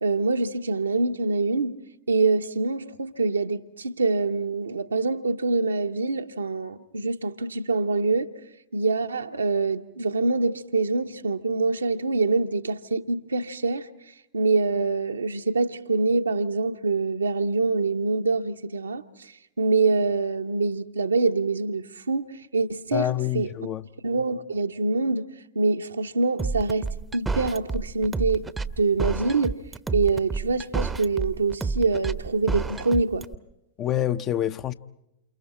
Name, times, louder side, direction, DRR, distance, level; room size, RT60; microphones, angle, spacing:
voice 1, 0.0-1.8 2.1-8.3 8.7-13.9 14.3-19.3 19.6-23.5 24.0-25.3 25.5-26.9 27.1-28.4 28.8-29.6 29.9-33.3, right 3 dB, 75° right, 1.1 m, -25 dB
voice 2, 22.9-23.8 33.8-34.7, left 11 dB, 30° left, 0.8 m, -26 dB
sound 1, 26.4-33.3, right 4 dB, 10° right, 0.9 m, -29 dB
29.5 x 28.5 x 4.3 m
figure-of-eight pair, 90°, 0 cm